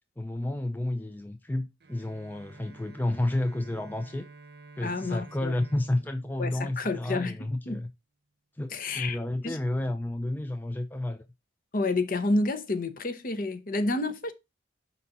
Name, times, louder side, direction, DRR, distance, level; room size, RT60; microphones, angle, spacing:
voice 1, 0.2-4.3 4.8-7.9 8.6-11.2, left 1 dB, 10° left, 0.4 m, -31 dB
Bowed string instrument, 1.8-7.5, right 3 dB, 55° right, 0.7 m, -51 dB
voice 2, 4.8-5.6 6.4-7.4 7.7-7.8 8.7-9.2 9.4-9.6 11.7-14.3, left 2 dB, 45° left, 0.8 m, -29 dB
5.3 x 4.2 x 5.7 m
head